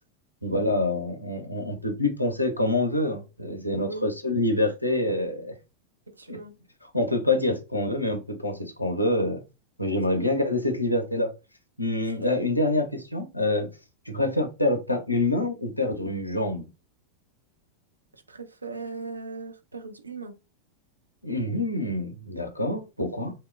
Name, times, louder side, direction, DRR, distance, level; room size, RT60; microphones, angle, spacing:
voice 1, 0.4-5.5 6.3-6.4 6.8-9.4 9.8-11.3 11.8-13.7 14.1-16.7 21.2-23.3, left 2 dB, 85° left, 0.4 m, -26 dB
voice 2, 6.1-6.5 10.1-10.3 18.1-20.3, right 3 dB, 80° right, 0.4 m, -38 dB
2.8 x 2.0 x 2.3 m
figure-of-eight pair, 90°, 0 cm